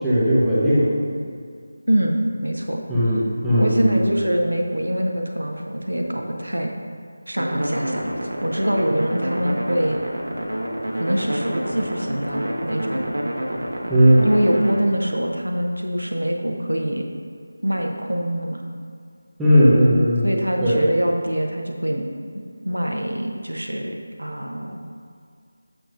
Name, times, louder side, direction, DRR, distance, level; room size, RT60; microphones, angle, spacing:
voice 1, 0.0-0.9 2.9-4.0 13.9-14.2 19.4-20.3 20.6-20.8, equal, 5° right, -13 dB, 1.0 m, -17 dB
voice 2, 1.9-2.8 3.6-6.8 7.3-8.1 8.4-10.0 10.9-13.0 14.2-17.0 17.6-18.6 20.2-22.0 22.3-24.9, equal, 85° right, 2 dB, 0.9 m, -24 dB
sound 1, 7.4-14.7, right 1 dB, 70° right, 1.2 m, -28 dB
7.6 x 7.2 x 2.6 m, 2.2 s
figure-of-eight pair, 165°, 0 cm